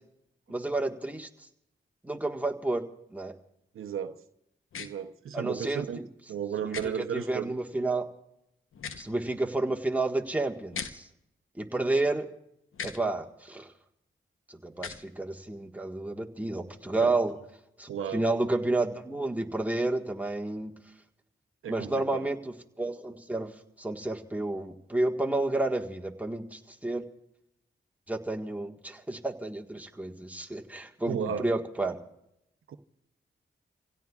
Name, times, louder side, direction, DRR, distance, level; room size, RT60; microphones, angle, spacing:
voice 1, 0.5-1.3 2.0-2.8 3.1-3.3 5.3-6.1 6.6-8.1 9.0-11.1 11.5-12.3 12.8-13.7 14.5-17.4 17.8-20.7 21.7-23.5 23.8-27.0 28.1-32.0, right 2 dB, 5° right, 1.5 m, -31 dB
voice 2, 3.7-4.2 4.8-6.0 6.3-7.5 17.0-17.1 17.9-18.2 21.6-22.3 31.1-31.5 32.7-32.8, right 8 dB, 90° right, 0.7 m, -34 dB
sound 1, 4.7-4.9 6.7-6.9 8.7-9.1 10.7-10.9 12.7-13.0 14.7-15.0, left 6 dB, 85° left, 0.9 m, -37 dB
28.5 x 16.5 x 2.4 m
cardioid pair, 45°, 21 cm